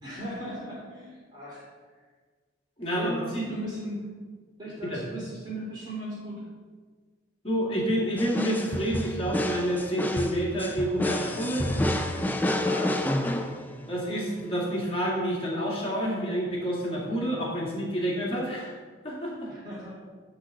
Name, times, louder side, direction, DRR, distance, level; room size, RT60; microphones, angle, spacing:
voice 1, 0.0-1.7 3.0-4.1 4.6-6.4 12.6-13.0 19.5-19.9, equal, 25° right, -8 dB, 3.0 m, -37 dB
voice 2, 2.8-3.4 4.8-5.0 7.4-11.7 13.9-18.7 19.0-19.5, equal, 30° left, -4 dB, 2.3 m, -29 dB
sound 1, 8.2-14.0, left 1 dB, 10° left, 0.5 m, -29 dB
11.0 x 4.0 x 7.6 m, 1.5 s
head